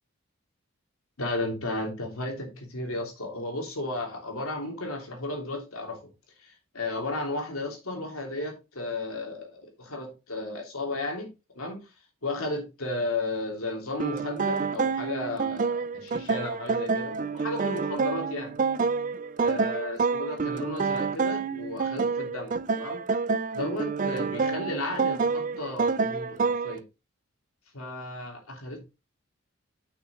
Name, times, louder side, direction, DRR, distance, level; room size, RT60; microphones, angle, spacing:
voice 1, 1.2-6.0 6.4-11.3 11.6-11.8 12.2-18.5 19.4-23.0 23.5-26.8 27.7-28.8, left 2 dB, 85° left, 2.9 m, -34 dB
sound 1, 14.0-26.8, right 4 dB, 35° right, 0.4 m, -28 dB
9.0 x 6.1 x 3.1 m
head